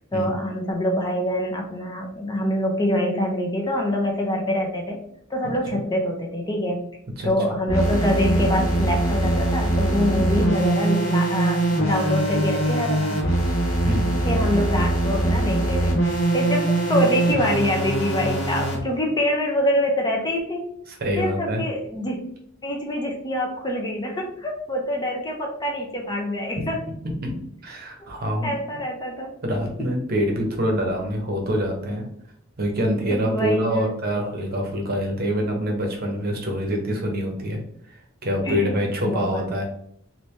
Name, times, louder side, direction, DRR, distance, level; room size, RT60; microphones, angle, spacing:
voice 1, 0.1-5.0 5.3-6.8 7.2-13.2 14.2-20.7 21.1-26.8 28.0-28.1 28.4-29.3 33.1-33.9 38.4-38.8 39.0-39.5, left 1 dB, 20° left, 0 dB, 0.5 m, -25 dB
sound 1, 7.7-18.8, right 1 dB, 90° left, 1.0 m, -22 dB
voice 2, 20.9-21.7 26.6-26.7 27.2-27.3 27.6-28.5 29.4-32.0 32.6-37.6 37.9-39.6, equal, 45° right, 2 dB, 0.8 m, -25 dB
3.2 x 2.6 x 3.2 m, 0.68 s
head